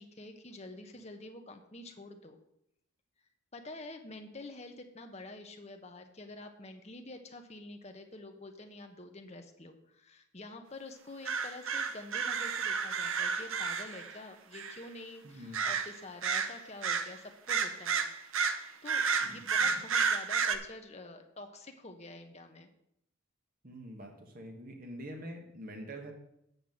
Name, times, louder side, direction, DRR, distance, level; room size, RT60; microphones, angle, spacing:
voice 1, 0.0-2.4 3.5-18.1 18.8-22.7, left 2 dB, 30° left, 5 dB, 1.0 m, -47 dB
sound 1, 11.3-14.2 14.5-14.8 15.5-15.9 16.2-17.1 17.5-20.6, right 5 dB, 70° right, 0.8 m, -31 dB
voice 2, 15.2-15.7 19.2-19.8 23.6-26.1, equal, 40° right, 3 dB, 1.3 m, -46 dB
8.1 x 5.5 x 7.6 m, 0.79 s
head